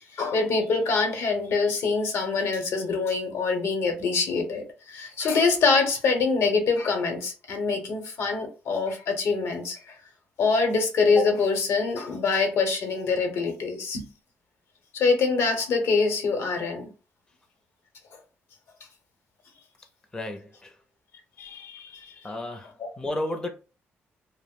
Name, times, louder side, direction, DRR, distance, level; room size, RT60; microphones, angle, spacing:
voice 1, 0.1-9.9 10.4-14.1 14.9-16.9 21.4-22.1, left 4 dB, 75° left, 0.9 m, -25 dB
voice 2, 20.1-20.8 22.2-23.5, left 1 dB, 15° left, 0.5 m, -33 dB
2.2 x 2.0 x 3.6 m
cardioid pair, 90°, 5 cm